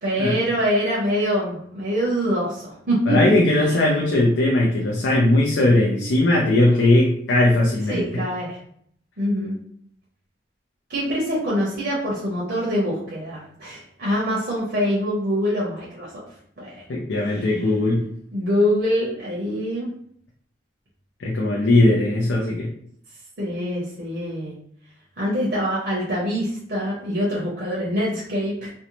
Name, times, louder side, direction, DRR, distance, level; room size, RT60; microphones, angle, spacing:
voice 1, 0.0-3.2 3.5-3.8 7.9-8.6 9.2-9.5 10.9-16.3 16.6-16.8 17.2-17.6 18.3-19.9 23.4-24.5 25.2-28.7, equal, 55° right, -6 dB, 0.7 m, -24 dB
voice 2, 3.1-8.0 16.9-18.0 21.2-22.7, left 2 dB, 75° left, -2 dB, 0.4 m, -19 dB
2.6 x 2.0 x 2.9 m, 0.65 s
head